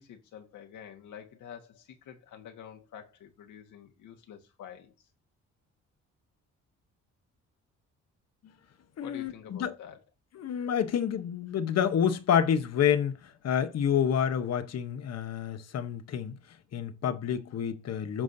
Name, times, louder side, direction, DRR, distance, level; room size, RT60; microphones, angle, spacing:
voice 1, 0.0-5.1 9.0-10.0, left 8 dB, 80° left, 1.7 m, -48 dB
voice 2, 9.0-9.7 10.4-16.4 16.7-18.2, left 8 dB, 55° left, 1.0 m, -28 dB
8.8 x 6.2 x 2.7 m
cardioid pair, 90°, 30 cm